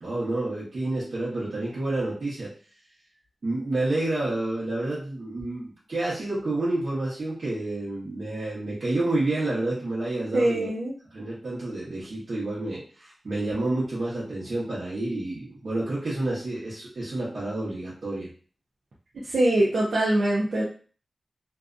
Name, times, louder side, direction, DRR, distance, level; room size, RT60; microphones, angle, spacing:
voice 1, 0.0-2.5 3.4-10.7 11.1-18.3, right 2 dB, 65° right, -9 dB, 0.9 m, -29 dB
voice 2, 10.3-10.9 19.3-20.6, right 1 dB, 85° right, -6 dB, 0.6 m, -23 dB
2.6 x 2.2 x 2.5 m, 0.40 s
wide cardioid pair, 120°, 0 cm